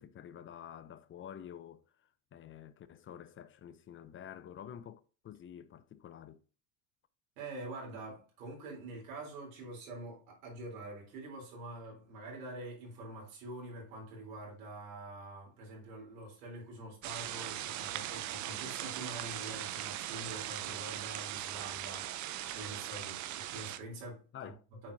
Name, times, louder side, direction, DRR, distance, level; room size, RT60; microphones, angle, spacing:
voice 1, 0.0-6.4 24.3-24.6, left 9 dB, 30° left, 0.7 m, -49 dB
voice 2, 7.4-24.9, right 2 dB, 75° right, 3.9 m, -46 dB
sound 1, 17.0-23.8, right 12 dB, 45° right, 0.7 m, -40 dB
8.8 x 4.5 x 2.8 m
hypercardioid pair, 95°, 41 cm